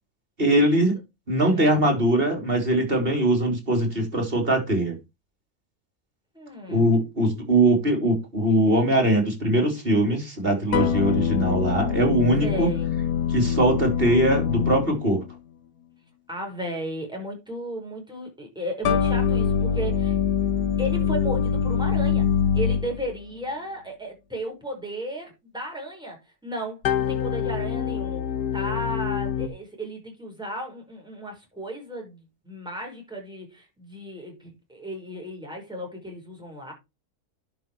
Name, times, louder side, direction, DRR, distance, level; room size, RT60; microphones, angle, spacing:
voice 1, 0.4-0.9 1.3-5.0 6.7-12.7 13.3-15.2, right 1 dB, 35° right, 3.8 m, -21 dB
voice 2, 1.4-1.9 6.3-7.0 12.4-12.9 16.3-20.2 20.8-28.2 28.5-36.7, equal, 5° right, 5.5 m, -34 dB
sound 1, 10.7-15.4 18.8-23.2 26.8-29.5, left 7 dB, 85° left, 1.6 m, -24 dB
11.0 x 5.8 x 4.7 m
omnidirectional pair, 1.7 m